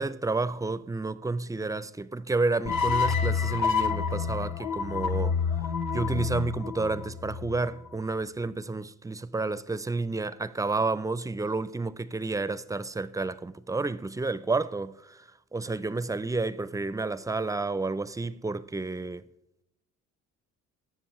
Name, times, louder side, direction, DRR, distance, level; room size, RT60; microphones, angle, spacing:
voice 1, 0.0-5.4 5.9-19.3, right 3 dB, 10° right, 0.4 m, -30 dB
sound 1, 2.7-7.9, left 5 dB, 65° left, 0.9 m, -28 dB
18.5 x 7.1 x 3.1 m
cardioid pair, 90°, 30 cm